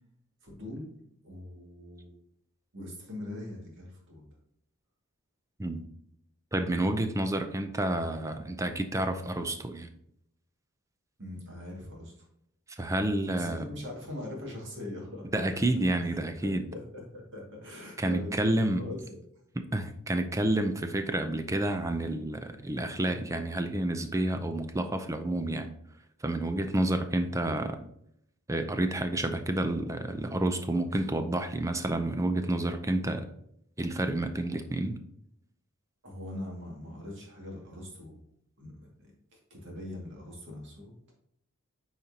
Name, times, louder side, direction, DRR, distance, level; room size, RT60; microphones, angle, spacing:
voice 1, 0.4-0.9 1.2-2.2 2.7-4.3 11.2-12.3 13.3-15.4 16.1-19.2 36.0-38.2 38.6-39.1 39.5-40.9, left 1 dB, 55° right, -1 dB, 2.1 m, -42 dB
voice 2, 6.5-9.9 12.8-13.7 15.3-16.6 18.0-18.8 19.7-25.7 26.2-27.8 28.5-33.3 33.8-35.0, right 1 dB, 15° right, 8 dB, 0.5 m, -29 dB
8.7 x 4.4 x 2.8 m, 0.74 s
head